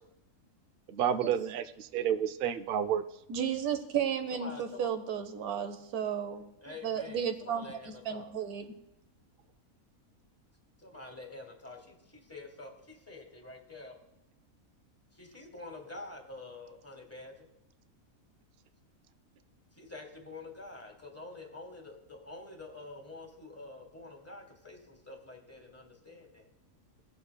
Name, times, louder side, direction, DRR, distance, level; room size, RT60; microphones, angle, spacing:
voice 1, 0.9-3.0, right 9 dB, 65° right, 10 dB, 0.5 m, -30 dB
voice 2, 3.3-6.4 6.8-8.7, right 8 dB, 85° right, 8 dB, 1.3 m, -33 dB
voice 3, 4.4-4.9 6.6-8.3 10.8-13.9 15.1-17.5 19.8-26.5, left 2 dB, 10° left, 3 dB, 1.3 m, -47 dB
17.5 x 6.7 x 2.2 m, 0.83 s
omnidirectional pair, 1.5 m